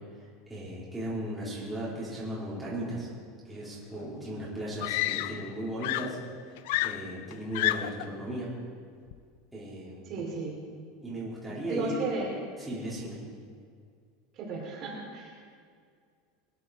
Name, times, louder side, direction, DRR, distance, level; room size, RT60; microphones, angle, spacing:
voice 1, 0.5-3.1 3.5-6.2 6.8-8.5 9.5-10.2 11.0-12.0 12.6-13.2, right 1 dB, ahead, -9 dB, 3.6 m, -36 dB
Screaming, 4.0-4.1 4.8-5.6 5.8-8.1 9.1-9.4, left 16 dB, 65° left, 0.4 m, -31 dB
voice 2, 10.0-10.5 11.4-12.3 14.3-15.4, right 4 dB, 35° right, -3 dB, 3.1 m, -34 dB
22.0 x 10.5 x 4.8 m, 2.1 s
supercardioid pair, 170°, 0 cm